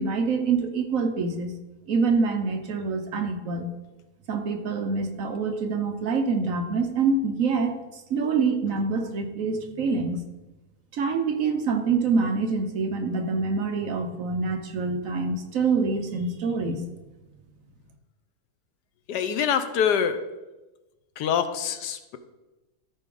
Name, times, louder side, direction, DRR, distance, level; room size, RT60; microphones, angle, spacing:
voice 1, 0.0-1.5 1.9-3.7 4.3-10.2 10.9-16.9, right 4 dB, 60° right, 5 dB, 1.2 m, -26 dB
voice 2, 19.1-20.2 21.2-22.2, left 8 dB, 85° left, 9 dB, 1.3 m, -25 dB
13.5 x 4.7 x 3.8 m, 1.1 s
omnidirectional pair, 1.7 m